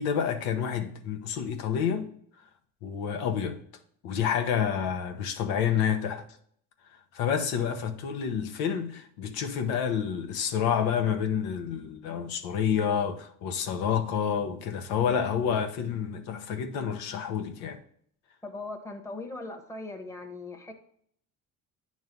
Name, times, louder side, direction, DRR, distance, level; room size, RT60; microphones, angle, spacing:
voice 1, 0.0-2.1 2.8-3.6 4.0-6.2 7.1-17.8, left 8 dB, 90° left, 0.9 m, -29 dB
voice 2, 18.4-20.7, left 2 dB, 10° left, 1.0 m, -39 dB
9.5 x 3.2 x 5.2 m
cardioid pair, 130°, 35 cm